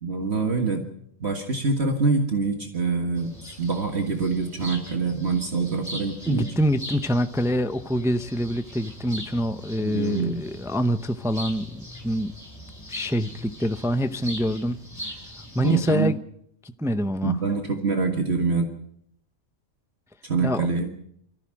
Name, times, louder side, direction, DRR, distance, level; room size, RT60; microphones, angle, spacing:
voice 1, 0.0-0.8 1.2-3.3 3.6-6.5 9.8-10.4 15.6-16.1 17.2-18.7 20.2-20.9, right 4 dB, 55° right, 3 dB, 2.0 m, -25 dB
sound 1, 3.2-15.9, equal, 15° left, 5.0 m, -41 dB
voice 2, 6.3-12.3 12.9-15.1 15.5-16.2 16.6-17.4 20.4-20.7, equal, 5° right, 10 dB, 0.5 m, -25 dB
24.0 x 14.5 x 7.6 m, 0.72 s
omnidirectional pair, 1.3 m